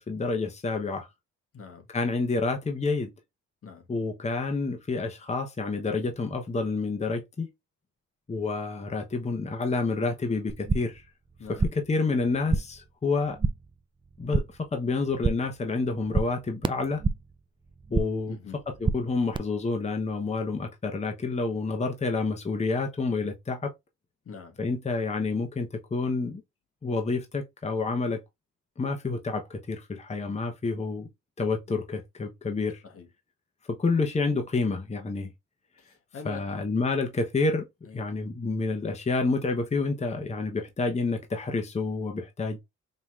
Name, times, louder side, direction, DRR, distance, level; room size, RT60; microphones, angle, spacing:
voice 1, 0.1-1.1 1.9-3.1 3.9-7.5 8.3-11.0 11.7-13.4 14.2-14.4 14.7-17.0 17.9-18.4 18.7-23.7 24.6-26.4 26.8-28.2 28.8-31.1 31.4-32.8 33.7-35.3 36.2-37.7 37.9-42.6, left 3 dB, 20° left, 0.9 m, -29 dB
voice 2, 1.5-1.9 3.6-3.9 11.4-11.7 18.3-18.6 24.2-24.6 31.7-31.8 32.8-33.1 35.8-36.6 37.8-38.1, left 5 dB, 50° left, 1.3 m, -44 dB
sound 1, 10.5-11.1 11.3-12.0 12.2-12.9 13.1-13.7 14.0-14.7 15.0-15.6 15.9-17.4 17.7-18.3 18.6-19.4, right 4 dB, 15° right, 0.3 m, -29 dB
5.4 x 2.9 x 2.4 m
cardioid pair, 90°, 30 cm